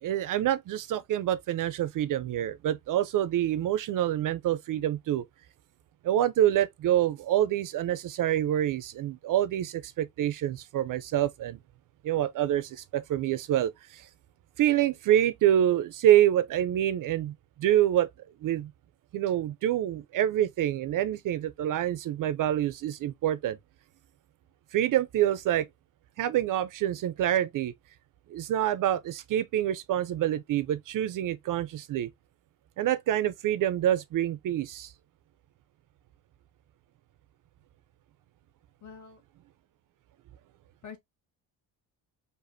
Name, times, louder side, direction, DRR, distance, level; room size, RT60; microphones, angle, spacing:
voice 1, 0.0-5.2 6.0-11.6 12.0-14.1 14.6-18.1 18.4-18.7 19.1-23.6 24.7-25.7 26.2-27.7 28.3-32.1 32.8-34.9, right 12 dB, 55° right, 0.5 m, -26 dB
voice 2, 38.8-39.2 40.8-41.0, left 6 dB, 50° left, 1.4 m, -45 dB
4.9 x 2.5 x 2.5 m
cardioid pair, 130°, 39 cm